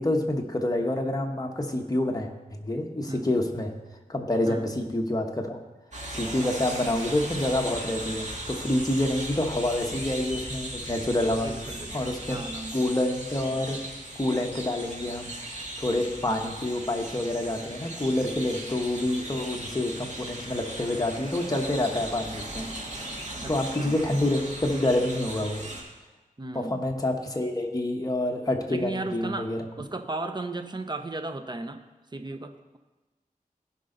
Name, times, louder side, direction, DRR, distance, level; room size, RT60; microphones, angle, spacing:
voice 1, 0.0-3.7 4.1-5.6 6.1-11.5 11.9-12.4 12.7-13.8 14.1-22.7 23.5-25.7 26.5-29.6, left 1 dB, 25° left, 2 dB, 1.2 m, -27 dB
sound 1, 5.9-25.8, right 1 dB, 55° right, 2.1 m, -38 dB
sound 2, 6.8-13.7, left 1 dB, 5° left, 2.3 m, -45 dB
voice 2, 11.4-12.0 12.3-12.8 23.4-24.0 26.4-26.8 28.7-29.5 29.8-31.8 32.1-32.8, right 2 dB, 30° right, 7 dB, 0.7 m, -35 dB
16.0 x 5.4 x 3.9 m, 1.2 s
wide cardioid pair, 95°, 15 cm